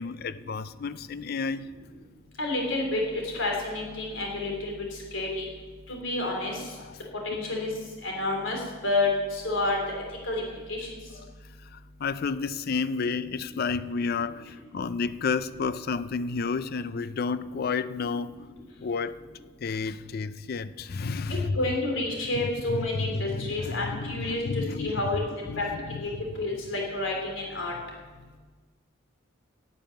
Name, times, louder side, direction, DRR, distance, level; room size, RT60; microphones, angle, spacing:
voice 1, 0.0-1.7 6.8-7.0 11.2-11.3 11.6-18.4 18.8-19.2 19.6-21.6 22.3-25.1 25.5-26.0, left 4 dB, 55° left, 0.4 m, -31 dB
voice 2, 2.4-4.7 5.1-5.5 5.9-6.6 7.2-7.7 8.0-9.8 10.3-10.4 10.7-10.9 21.3-25.7 26.0-27.7, left 2 dB, 90° left, 3.5 m, -29 dB
12.0 x 7.3 x 9.3 m
head